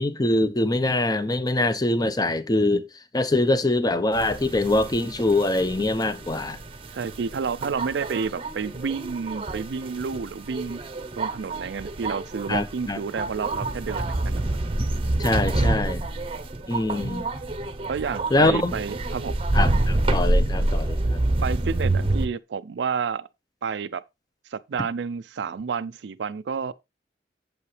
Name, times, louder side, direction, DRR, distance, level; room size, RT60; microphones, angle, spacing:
voice 1, 0.0-2.9 3.1-6.6 12.5-13.0 15.2-16.0 16.7-17.2 18.3-18.7 19.5-21.2, left 2 dB, 20° left, 0.8 m, -23 dB
sound 1, 4.1-22.3, right 2 dB, 30° right, 0.8 m, -27 dB
voice 2, 6.9-10.8 11.2-14.4 17.9-19.4 21.4-23.3 23.6-24.0 24.5-26.7, right 5 dB, 75° right, 0.4 m, -30 dB
8.4 x 7.8 x 3.2 m
head